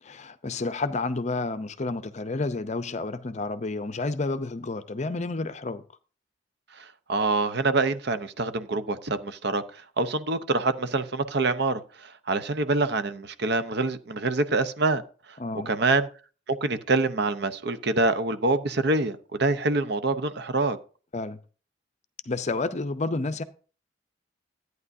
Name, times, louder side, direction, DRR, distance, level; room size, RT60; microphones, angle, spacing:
voice 1, 0.0-5.8 15.4-15.7 21.1-21.4 22.3-23.4, left 3 dB, 35° left, 0.6 m, -30 dB
voice 2, 6.8-15.0 15.7-16.1 16.5-20.8, right 3 dB, 55° right, 0.8 m, -26 dB
13.5 x 9.5 x 2.7 m
head